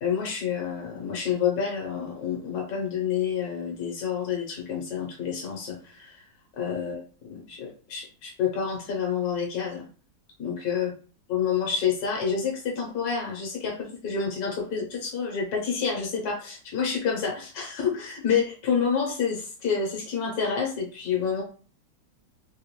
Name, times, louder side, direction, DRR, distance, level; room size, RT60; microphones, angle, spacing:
voice 1, 0.0-6.2 6.6-9.9 10.4-10.9 11.3-21.4, left 6 dB, 65° left, 0 dB, 1.5 m, -28 dB
3.5 x 2.5 x 3.0 m, 0.39 s
omnidirectional pair, 1.9 m